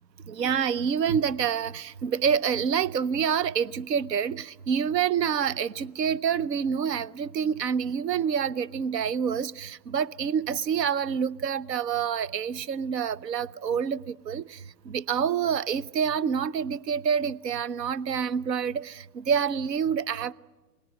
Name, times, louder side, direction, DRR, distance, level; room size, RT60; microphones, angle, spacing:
voice 1, 0.3-20.3, right 7 dB, 80° right, 18 dB, 1.0 m, -27 dB
29.5 x 20.0 x 10.0 m, 1.2 s
hypercardioid pair, 130°, 49 cm